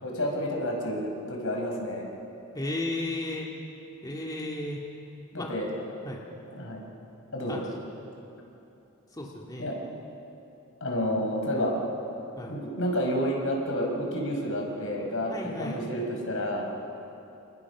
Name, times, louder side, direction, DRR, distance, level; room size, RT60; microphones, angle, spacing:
voice 1, 0.0-2.1 5.3-5.7 6.5-6.8 7.3-7.6 9.6-9.8 10.8-11.7 12.5-15.3 15.6-16.7, equal, 65° left, 0 dB, 5.4 m, -30 dB
voice 2, 2.5-3.5 4.0-4.8 5.4-5.5 6.0-6.2 7.5-7.8 9.1-9.7 12.4-12.6 15.3-15.9, left 2 dB, 20° left, -2 dB, 2.2 m, -34 dB
29.5 x 27.5 x 6.1 m, 2.9 s
head